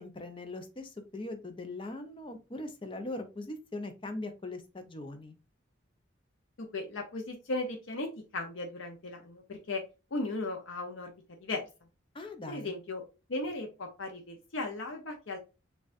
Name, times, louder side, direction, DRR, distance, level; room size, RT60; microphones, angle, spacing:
voice 1, 0.0-5.3 12.1-12.7, left 2 dB, 25° left, 6 dB, 0.6 m, -40 dB
voice 2, 6.6-9.8 10.1-11.1 11.4-11.7 12.5-13.0 13.3-15.4, left 2 dB, 80° left, 3 dB, 0.7 m, -36 dB
6.3 x 2.4 x 2.5 m, 0.29 s
head